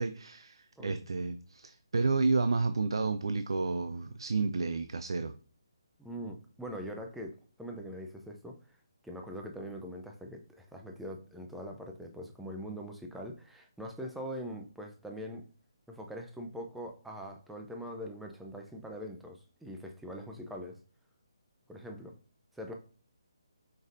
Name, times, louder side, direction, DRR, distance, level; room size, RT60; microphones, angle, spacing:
voice 1, 0.0-5.3, right 3 dB, 80° right, 10 dB, 0.4 m, -31 dB
voice 2, 6.0-8.6 9.0-15.4 15.9-20.8 21.7-22.1 22.5-22.7, equal, ahead, 2 dB, 0.5 m, -42 dB
5.2 x 3.9 x 2.5 m, 0.39 s
hypercardioid pair, 160°, 3 cm